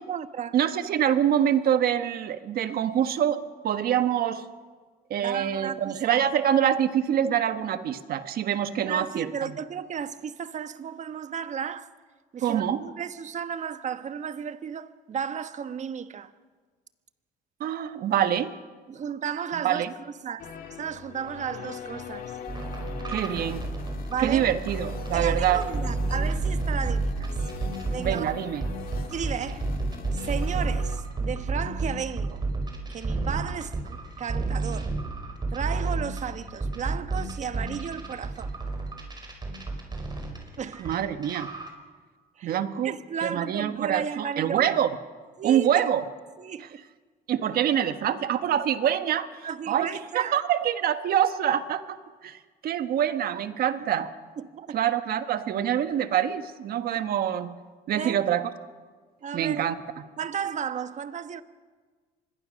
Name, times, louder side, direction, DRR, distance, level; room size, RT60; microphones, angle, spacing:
voice 1, 0.0-0.6 5.2-6.2 8.9-11.9 12.3-16.3 18.9-20.5 20.8-22.3 24.1-24.5 25.1-27.3 27.9-28.3 29.1-29.7 30.1-32.4 32.9-35.0 35.5-38.5 40.6-40.9 42.4-42.6 42.8-44.7 45.4-45.9 46.4-46.8 49.4-50.4 54.4-54.8 57.9-58.2 59.2-59.7 60.2-61.4, right 7 dB, 45° right, 1.2 m, -34 dB
voice 2, 0.5-4.4 5.1-9.5 12.4-12.8 17.6-18.5 19.6-19.9 23.1-23.7 24.2-25.6 28.0-28.6 40.8-41.5 42.4-42.9 43.2-44.9 45.4-46.1 47.3-49.3 49.7-49.9 50.1-52.0 52.2-52.4 52.6-54.1 54.7-57.5 57.9-58.5 59.3-60.0, right 10 dB, 65° right, 1.4 m, -25 dB
sound 1, 20.4-31.0, left 8 dB, 60° left, 2.1 m, -41 dB
sound 2, 22.5-28.2 28.6-40.9 41.2-41.7, right 3 dB, 25° right, 5.2 m, -30 dB
25.0 x 21.5 x 6.4 m
cardioid pair, 110°, 17 cm